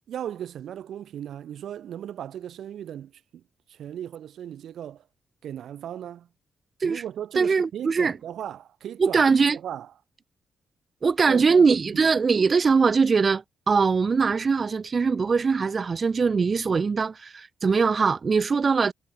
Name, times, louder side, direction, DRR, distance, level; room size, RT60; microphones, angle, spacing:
voice 1, 0.1-3.4 3.7-5.0 5.4-6.3 6.8-9.2 9.5-9.9 11.3-12.1, right 10 dB, 80° right, 0.7 m, -37 dB
voice 2, 7.4-8.1 9.0-9.6 11.0-18.9, right 5 dB, 40° right, 0.5 m, -21 dB
cardioid pair, 100°, 0 cm